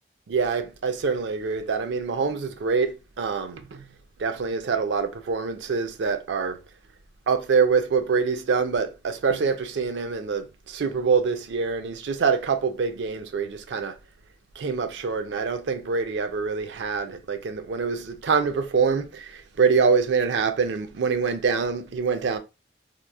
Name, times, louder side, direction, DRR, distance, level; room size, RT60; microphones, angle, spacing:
voice 1, 0.3-3.9 4.2-6.6 7.3-13.9 14.6-22.4, right 5 dB, 85° right, 0.4 m, -25 dB
2.9 x 2.3 x 2.2 m
head